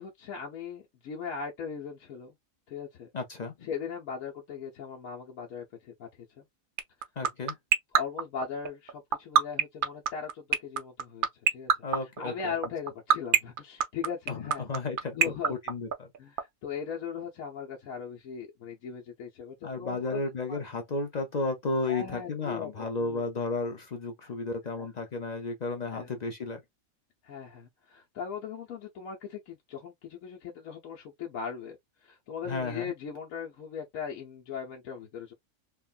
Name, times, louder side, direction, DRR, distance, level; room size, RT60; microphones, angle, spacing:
voice 1, 0.0-2.3 2.7-3.1 3.6-6.1 6.4-6.5 7.9-11.7 12.2-14.7 15.1-15.6 16.2-20.2 20.5-20.6 21.9-22.7 23.0-23.2 24.2-24.3 24.8-24.9 25.9-26.1 27.2-31.8 32.0-35.3, left 6 dB, 75° left, 1.2 m, -39 dB
voice 2, 3.1-3.7 7.2-7.6 11.8-12.5 14.3-15.2 15.5-16.1 19.6-26.6 32.5-32.9, left 3 dB, 60° left, 0.4 m, -33 dB
sound 1, 6.8-16.4, right 8 dB, 70° right, 0.5 m, -21 dB
3.4 x 2.2 x 2.3 m
omnidirectional pair, 1.5 m